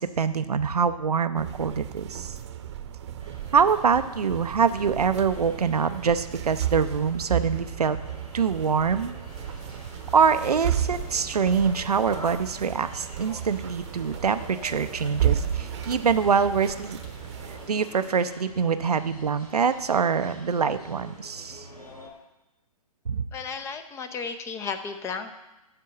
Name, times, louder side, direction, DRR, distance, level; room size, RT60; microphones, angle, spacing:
voice 1, 0.0-2.4 3.5-8.0 8.3-9.1 10.1-17.0 17.5-21.7 23.1-23.2, right 6 dB, 80° right, 11 dB, 0.6 m, -24 dB
sound 1, 1.4-17.7, right 10 dB, 45° right, 0.9 m, -33 dB
sound 2, 3.2-22.1, equal, 90° left, 3.8 m, -46 dB
sound 3, 9.3-18.3, left 2 dB, 50° left, 4.3 m, -51 dB
voice 2, 23.3-25.3, left 5 dB, 15° left, 10 dB, 0.7 m, -34 dB
13.5 x 4.5 x 7.7 m, 1.0 s
figure-of-eight pair, 120°, 19 cm